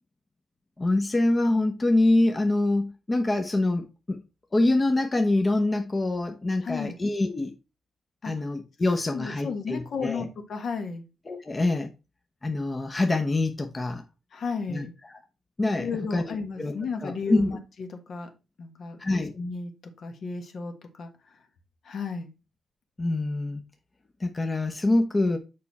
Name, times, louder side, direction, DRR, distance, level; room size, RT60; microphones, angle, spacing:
voice 1, 0.8-4.2 4.5-7.5 8.2-10.3 11.3-11.9 12.4-14.0 14.7-15.2 15.6-16.7 17.0-17.6 19.0-19.3 23.0-23.6 24.2-25.4, left 2 dB, 25° left, 0.9 m, -25 dB
voice 2, 6.6-7.0 8.2-8.3 9.1-11.1 14.3-14.9 15.8-18.3 18.6-19.0 19.3-19.7 20.0-21.4 21.8-22.3, left 5 dB, 60° left, 1.5 m, -33 dB
6.8 x 4.9 x 4.1 m
cardioid pair, 100°, 0 cm